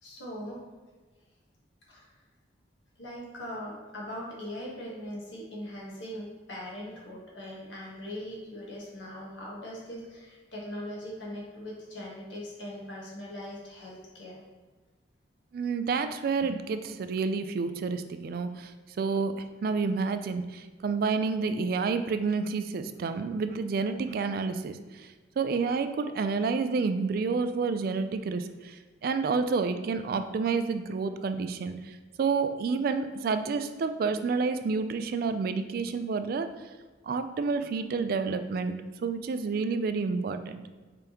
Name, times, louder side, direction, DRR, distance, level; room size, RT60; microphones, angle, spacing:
voice 1, 0.0-0.6 1.9-2.1 3.0-14.4, equal, 85° left, -4 dB, 1.3 m, -40 dB
voice 2, 15.5-18.7 19.0-19.3 19.6-25.1 25.4-36.5 37.0-40.6, right 4 dB, 55° right, 10 dB, 0.3 m, -29 dB
5.1 x 3.5 x 2.9 m, 1.3 s
head